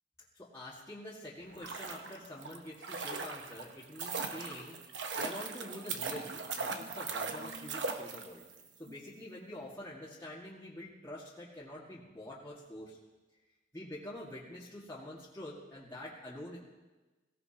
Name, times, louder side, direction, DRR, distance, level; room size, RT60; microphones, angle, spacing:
voice 1, 0.3-4.8 5.1-8.4 8.8-13.0 13.7-16.6, left 1 dB, 15° left, -8 dB, 2.0 m, -46 dB
sound 1, 1.4-8.6 8.9-9.0, right 4 dB, 75° right, 1.1 m, -39 dB
23.0 x 17.0 x 3.0 m, 1.2 s
head